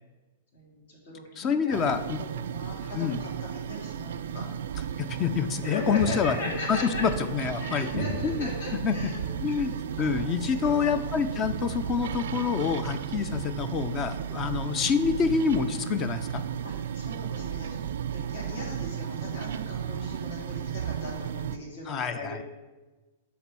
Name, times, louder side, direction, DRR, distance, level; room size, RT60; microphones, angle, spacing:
voice 1, 0.5-4.4 5.6-7.0 7.6-10.9 16.6-17.8 18.1-22.4, left 1 dB, 70° left, -2 dB, 2.5 m, -38 dB
voice 2, 1.4-2.2 2.9-3.2 5.0-6.3 6.7-7.9 8.2-16.4 21.9-22.4, left 6 dB, 30° left, 11 dB, 0.4 m, -27 dB
sound 1, 1.7-21.6, right 9 dB, 75° right, 0.3 m, -34 dB
7.1 x 3.4 x 6.1 m, 1.2 s
hypercardioid pair, 140°, 0 cm